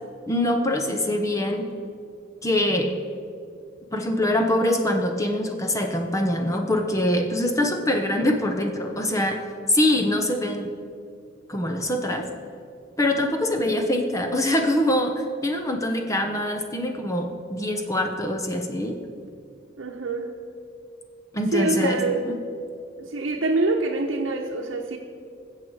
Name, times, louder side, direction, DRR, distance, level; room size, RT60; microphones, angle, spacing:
voice 1, 0.3-1.7 2.4-3.0 3.9-10.7 11.5-12.3 13.0-19.0 21.3-22.0 22.3-22.4, left 1 dB, 15° left, 4 dB, 0.8 m, -24 dB
voice 2, 19.8-20.3 21.5-22.3 23.0-25.0, right 2 dB, 70° right, -1 dB, 0.9 m, -25 dB
20.5 x 7.5 x 4.7 m, 2.4 s
head